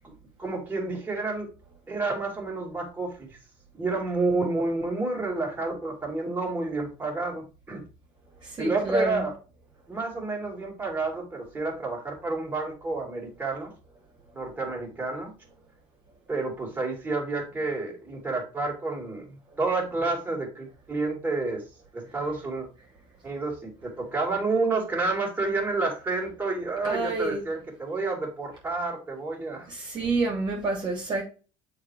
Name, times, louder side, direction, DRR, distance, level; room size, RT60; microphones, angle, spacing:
voice 1, 0.4-1.5 1.9-3.3 3.8-7.8 8.6-9.3 9.9-13.7 14.3-15.3 16.3-21.6 21.9-22.7 23.2-29.7, right 3 dB, 15° right, 2.9 m, -29 dB
voice 2, 8.4-9.3 26.8-27.5 29.7-31.2, right 2 dB, 35° right, 2.3 m, -28 dB
7.0 x 4.2 x 3.2 m
supercardioid pair, 105°, 12 cm